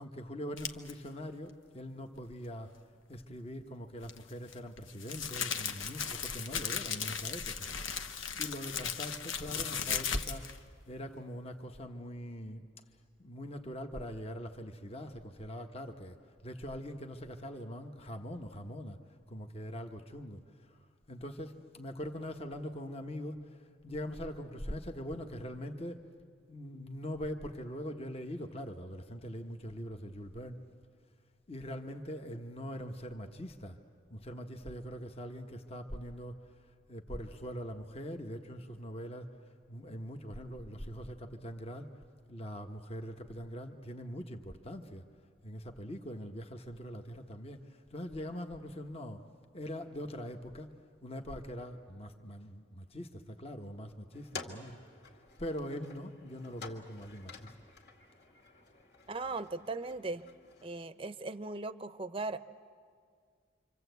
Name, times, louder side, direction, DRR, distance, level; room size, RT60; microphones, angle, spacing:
voice 1, 0.0-2.8 3.1-8.1 8.4-12.6 13.2-16.2 16.4-19.0 19.3-26.0 26.5-30.6 31.5-33.8 34.1-36.6 36.9-39.4 39.7-45.1 45.4-49.2 49.5-50.7 51.0-54.8 55.4-57.5, equal, 30° left, 5 dB, 1.1 m, -42 dB
sound 1, 0.6-0.9 4.0-10.6, left 7 dB, 80° left, 1.1 m, -37 dB
sound 2, 54.1-60.9, left 4 dB, 55° left, 2.3 m, -51 dB
voice 2, 59.1-60.2 60.6-62.4, right 3 dB, 30° right, 12 dB, 0.7 m, -38 dB
27.0 x 26.0 x 8.1 m, 2.1 s
head